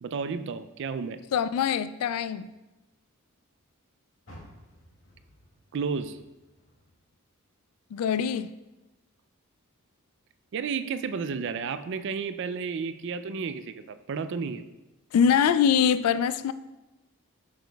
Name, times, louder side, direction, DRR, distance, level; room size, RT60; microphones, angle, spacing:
voice 1, 0.0-1.2 5.7-6.2 10.5-14.6, right 5 dB, 55° right, 12 dB, 0.3 m, -32 dB
voice 2, 1.3-2.5 7.9-8.5 15.1-16.5, left 7 dB, 85° left, 14 dB, 0.3 m, -23 dB
Car, 4.2-7.5 7.9-9.3 9.7-9.8 10.4-10.5, equal, 65° left, 1.9 m, -54 dB
7.8 x 6.5 x 2.3 m, 1.0 s
head